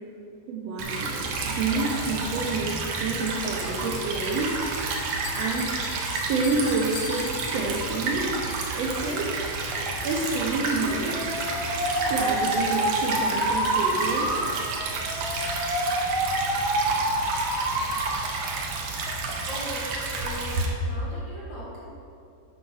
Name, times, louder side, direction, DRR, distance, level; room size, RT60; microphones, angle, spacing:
voice 1, 0.5-4.6 5.3-5.8 6.0-9.4 10.0-11.3 12.1-14.4, right 3 dB, 90° right, -3 dB, 1.4 m, -29 dB
Stream / Trickle dribble, 0.8-20.7, right 3 dB, 70° right, 1.7 m, -30 dB
Bell, 3.6-8.1, left 5 dB, 90° left, 2.8 m, -42 dB
Alarm, 10.8-18.1 18.4-19.0, right 1 dB, 40° right, 1.5 m, -28 dB
voice 2, 19.5-21.9, equal, 40° left, -8 dB, 2.2 m, -38 dB
8.3 x 5.5 x 5.6 m, 2.6 s
omnidirectional pair, 4.0 m